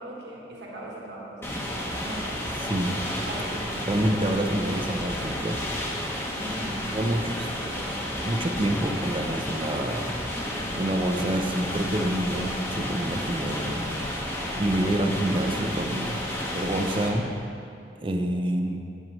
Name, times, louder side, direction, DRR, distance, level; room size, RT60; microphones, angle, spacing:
voice 1, 0.0-2.3 3.2-3.9 6.3-8.0, right 1 dB, 70° right, -3 dB, 1.5 m, -40 dB
sound 1, 1.4-17.1, left 1 dB, 15° left, 1.1 m, -31 dB
voice 2, 2.6-3.0 3.8-5.6 6.9-7.5 8.2-10.1 10.8-13.9 14.6-16.2 16.5-17.3 18.0-18.8, right 1 dB, 30° right, 4 dB, 0.6 m, -27 dB
10.5 x 8.9 x 3.1 m, 2.5 s
head